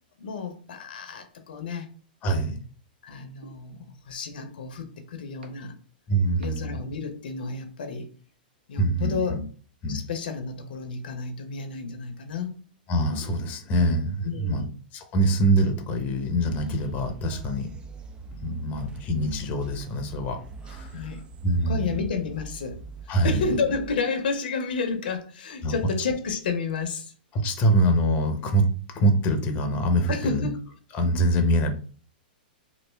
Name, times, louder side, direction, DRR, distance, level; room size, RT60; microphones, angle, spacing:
voice 1, 0.2-1.9 3.0-5.8 6.4-8.1 8.7-9.4 9.9-12.6 14.2-14.7 20.9-21.2 21.7-22.8 23.1-27.1 30.1-30.6, left 4 dB, 75° left, 7 dB, 0.7 m, -31 dB
voice 2, 2.2-2.6 6.1-6.8 8.8-9.4 9.8-10.0 12.9-14.6 14.9-17.7 18.4-20.4 20.6-21.1 21.4-22.0 23.1-23.5 25.6-25.7 27.3-28.7 28.9-30.5 30.9-31.7, right 1 dB, 30° left, 6 dB, 0.7 m, -24 dB
sound 1, 3.4-3.5 4.4-4.5 5.4-5.5 6.4-6.5 7.4-7.5, right 4 dB, 90° right, 0.8 m, -43 dB
sound 2, 16.4-24.0, right 4 dB, 20° right, 0.3 m, -42 dB
3.2 x 2.4 x 3.3 m, 0.41 s
hypercardioid pair, 130°, 5 cm